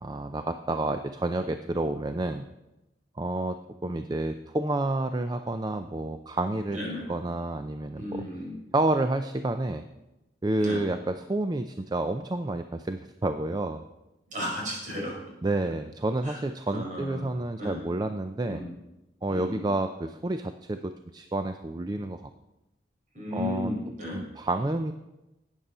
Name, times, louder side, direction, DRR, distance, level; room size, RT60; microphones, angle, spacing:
voice 1, 0.0-2.5 3.2-6.8 7.1-8.2 8.7-9.8 10.4-13.8 15.4-18.7 19.2-22.3 23.3-23.7 24.1-24.9, right 2 dB, 25° right, 9 dB, 0.4 m, -29 dB
voice 2, 6.7-7.1 7.9-8.5 10.6-10.8 14.3-15.2 16.2-16.4 16.7-17.3 17.6-17.8 18.4-18.7 19.3-19.6 23.1-24.2, left 1 dB, 45° right, -2 dB, 4.9 m, -34 dB
13.0 x 8.9 x 5.5 m, 0.97 s
head